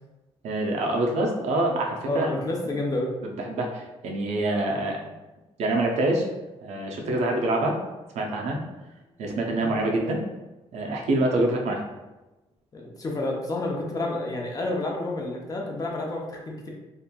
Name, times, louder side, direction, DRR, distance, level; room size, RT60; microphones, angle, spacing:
voice 1, 0.4-2.3 3.4-5.1 5.6-6.3 6.6-7.8 8.1-8.6 9.2-10.2 10.7-11.8, right 2 dB, 80° right, 1 dB, 0.5 m, -25 dB
voice 2, 2.1-3.1 9.5-9.7 12.7-16.7, left 2 dB, 35° left, -1 dB, 0.6 m, -29 dB
2.8 x 2.4 x 2.2 m, 1.1 s
cardioid pair, 105°, 11 cm